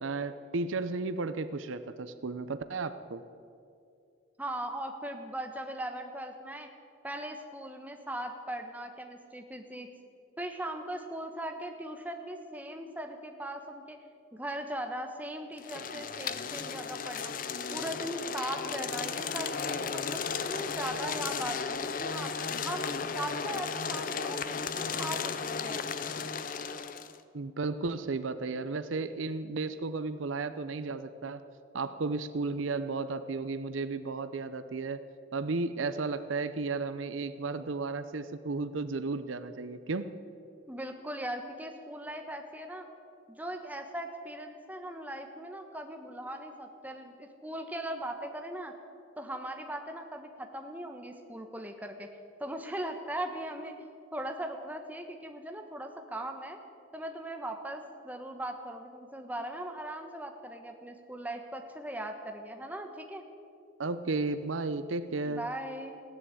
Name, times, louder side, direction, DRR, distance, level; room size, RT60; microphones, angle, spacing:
voice 1, 0.0-3.2 27.3-31.4 31.7-35.0 35.3-40.1 63.8-65.5, right 3 dB, 85° right, 12 dB, 0.7 m, -34 dB
voice 2, 4.4-6.7 7.0-9.9 10.4-14.0 14.3-17.3 17.7-20.2 20.5-22.3 22.6-25.8 40.7-42.9 43.3-48.7 49.2-52.1 52.4-53.7 54.1-56.6 56.9-63.2 65.2-66.0, right 1 dB, 10° right, 4 dB, 1.2 m, -39 dB
sound 1, 15.6-27.2, left 5 dB, 45° left, 0.6 m, -35 dB
16.0 x 11.0 x 8.4 m, 2.5 s
head